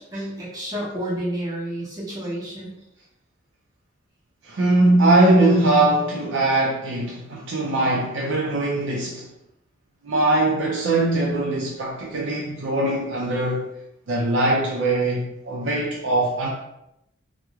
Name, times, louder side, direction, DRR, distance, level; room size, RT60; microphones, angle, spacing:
voice 1, 0.0-2.7, right 1 dB, 20° right, 1.1 m, -30 dB
voice 2, 4.4-9.2 10.0-13.7 14.1-16.5, right 2 dB, 70° right, 0.5 m, -21 dB
3.0 x 2.0 x 3.5 m
head